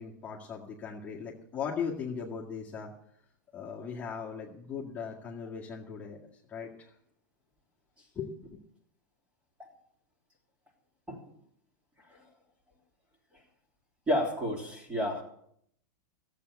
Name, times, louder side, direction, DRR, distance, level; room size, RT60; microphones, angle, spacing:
voice 1, 0.0-2.9 3.5-6.9 8.1-8.6, left 6 dB, 15° left, -6 dB, 2.1 m, -38 dB
voice 2, 14.1-15.2, equal, 15° right, 0 dB, 3.4 m, -31 dB
14.0 x 8.2 x 8.2 m, 0.70 s
supercardioid pair, 145°, 10 cm